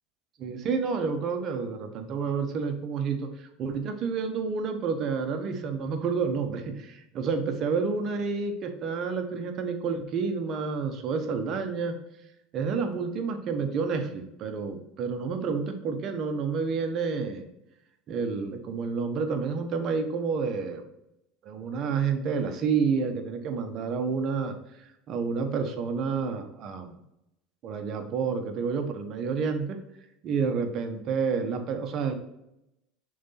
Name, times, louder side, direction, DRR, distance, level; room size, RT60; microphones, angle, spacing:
voice 1, 0.4-12.0 12.5-17.4 18.1-20.8 21.4-24.5 25.1-26.9 27.6-29.8 30.2-32.1, right 5 dB, 45° right, 6 dB, 1.0 m, -29 dB
6.1 x 4.0 x 4.2 m, 0.86 s
supercardioid pair, 120°, 0 cm